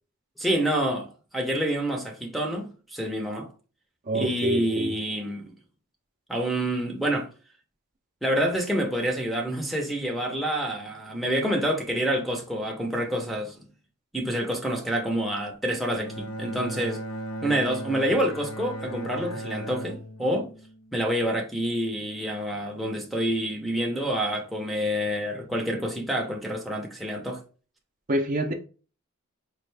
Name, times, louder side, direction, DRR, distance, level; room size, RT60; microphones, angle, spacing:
voice 1, 0.4-1.1 1.3-3.5 4.1-5.4 6.3-7.3 8.2-13.7 14.1-17.0 17.4-20.5 20.9-27.4, equal, ahead, 0.7 m, -27 dB
voice 2, 4.1-4.9 28.1-28.5, right 1 dB, 40° right, 0.6 m, -26 dB
Bowed string instrument, 15.9-21.4, right 1 dB, 70° left, 0.6 m, -37 dB
4.4 x 2.4 x 3.3 m
head